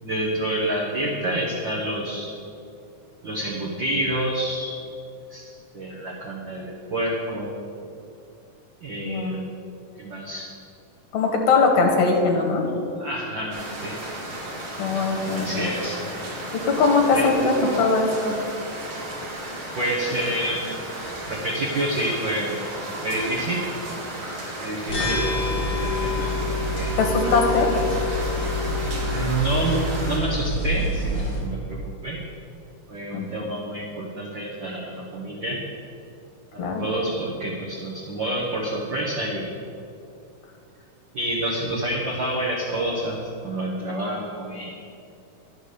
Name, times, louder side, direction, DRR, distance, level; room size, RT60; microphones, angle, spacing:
voice 1, 0.0-2.3 3.2-4.7 5.3-7.5 8.8-9.5 10.0-10.5 13.0-13.9 15.3-16.0 17.1-17.2 19.7-20.6 21.3-22.6 23.0-23.6 24.6-26.9 27.2-27.7 29.0-32.2 32.9-35.6 36.5-39.5 41.1-44.7, right 1 dB, 80° right, -4 dB, 1.0 m, -28 dB
voice 2, 9.0-9.4 11.1-12.6 14.8-15.8 16.5-18.3 27.0-27.7 33.1-33.3 36.6-36.8, left 4 dB, 65° left, 1 dB, 2.5 m, -21 dB
sound 1, 13.5-30.2, right 1 dB, 45° right, 2.2 m, -34 dB
sound 2, 24.9-31.4, left 2 dB, 35° left, 2.3 m, -26 dB
11.0 x 5.9 x 6.6 m, 2.6 s
omnidirectional pair, 4.0 m